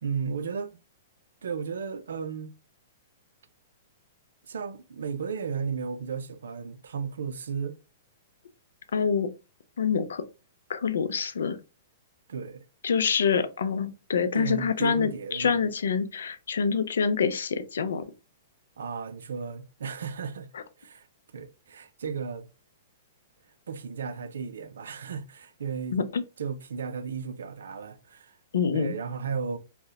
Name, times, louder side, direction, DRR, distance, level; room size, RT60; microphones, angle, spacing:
voice 1, 0.0-0.8 1.4-2.6 4.5-7.8 12.3-12.7 14.3-15.7 18.8-20.5 20.8-21.1 21.3-22.5 23.7-26.0 26.4-28.4 28.7-29.6, right 6 dB, 80° right, 0.3 m, -34 dB
voice 2, 8.9-9.3 9.8-10.2 10.7-11.6 12.8-18.0 25.9-26.2 28.5-28.9, left 6 dB, 80° left, 0.3 m, -26 dB
2.7 x 2.0 x 2.2 m
hypercardioid pair, 130°, 0 cm